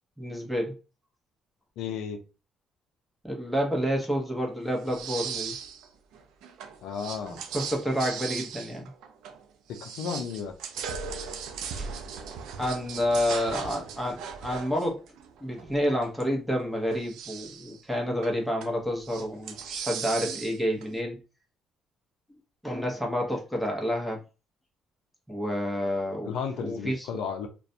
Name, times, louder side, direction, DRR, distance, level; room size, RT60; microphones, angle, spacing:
voice 1, 0.2-0.8 3.2-5.6 7.2-8.9 11.8-11.9 12.6-15.0 15.4-21.2 22.6-24.2 25.3-26.3 26.6-27.1, equal, ahead, 0.8 m, -29 dB
voice 2, 1.8-2.2 6.8-7.4 9.7-10.5 26.2-27.5, left 6 dB, 80° left, 0.4 m, -33 dB
sound 1, 4.8-5.9 6.1-9.4 9.7-16.2 16.8-17.8 18.2-18.8 19.0-20.9, right 6 dB, 85° right, 0.4 m, -38 dB
2.4 x 2.1 x 2.6 m
cardioid pair, 100°, 0 cm